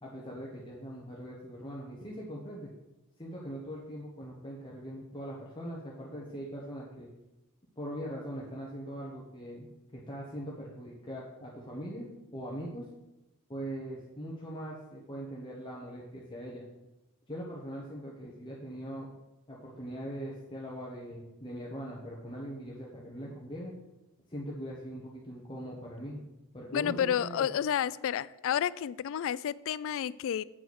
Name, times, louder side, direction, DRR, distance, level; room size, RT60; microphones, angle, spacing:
voice 1, 0.0-2.7 3.2-7.1 7.8-12.1 12.3-12.8 13.5-16.6 17.3-19.1 19.5-23.7 24.3-26.2 26.5-27.5, equal, 20° left, -4 dB, 1.3 m, -41 dB
voice 2, 26.7-30.4, left 9 dB, 60° left, 18 dB, 0.3 m, -30 dB
8.8 x 4.6 x 6.3 m, 0.96 s
head